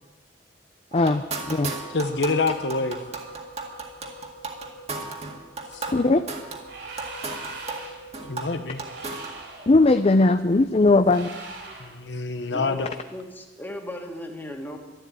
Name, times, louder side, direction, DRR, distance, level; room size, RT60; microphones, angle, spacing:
voice 1, 0.9-1.7 5.9-6.2 9.7-11.3, left 2 dB, 35° left, 9 dB, 0.5 m, -19 dB
sound 1, 0.9-9.4, right 3 dB, 40° right, 2.0 m, -36 dB
voice 2, 1.9-3.0 5.7-5.8 8.2-8.8 11.8-12.9, left 3 dB, 85° left, 9 dB, 1.1 m, -26 dB
sound 2, 6.6-8.1 8.7-9.7 11.1-12.0, right 3 dB, 75° right, 4.1 m, -40 dB
voice 3, 12.5-14.8, left 1 dB, 10° left, 2 dB, 2.0 m, -36 dB
12.0 x 11.5 x 9.1 m, 1.2 s
head